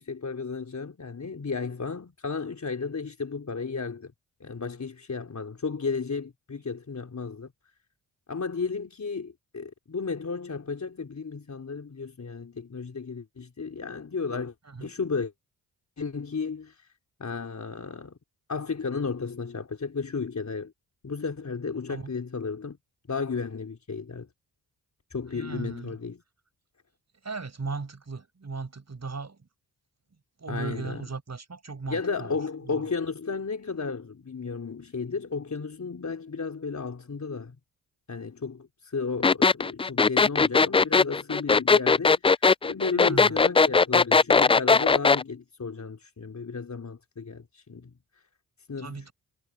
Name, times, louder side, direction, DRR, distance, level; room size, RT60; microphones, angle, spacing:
voice 1, 0.0-4.1 4.4-7.5 8.3-14.5 14.8-15.3 16.0-16.9 17.2-18.2 18.5-20.7 21.0-22.8 23.1-24.3 25.1-26.2 30.5-31.0 31.9-37.6 38.1-42.4 42.6-47.9 48.7-49.1, left 5 dB, 40° left, 3.9 m, -33 dB
voice 2, 25.3-26.0 27.2-29.4 30.4-32.4 32.7-32.8 42.9-43.4 48.8-49.1, right 4 dB, 40° right, 6.0 m, -37 dB
sound 1, 39.2-45.2, left 4 dB, 15° left, 0.3 m, -19 dB
supercardioid pair, 50°, 42 cm